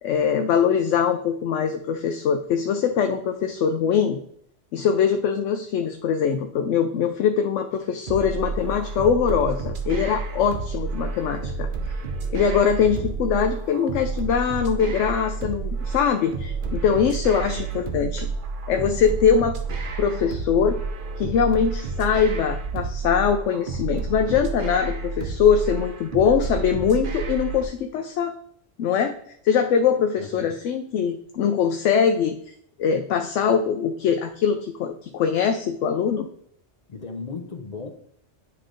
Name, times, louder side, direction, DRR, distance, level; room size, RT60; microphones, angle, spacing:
voice 1, 0.0-4.2 4.7-11.7 12.3-18.3 18.7-19.6 20.0-20.8 21.2-28.3 28.8-29.1 29.4-32.5 32.8-36.3, left 7 dB, 80° left, 6 dB, 0.9 m, -22 dB
sound 1, 8.1-27.7, right 4 dB, 50° right, 0.9 m, -30 dB
voice 2, 12.8-13.2 17.4-18.0 30.2-30.6 36.9-37.9, left 4 dB, 40° left, 5 dB, 0.6 m, -37 dB
9.6 x 3.3 x 3.7 m, 0.67 s
omnidirectional pair, 1.2 m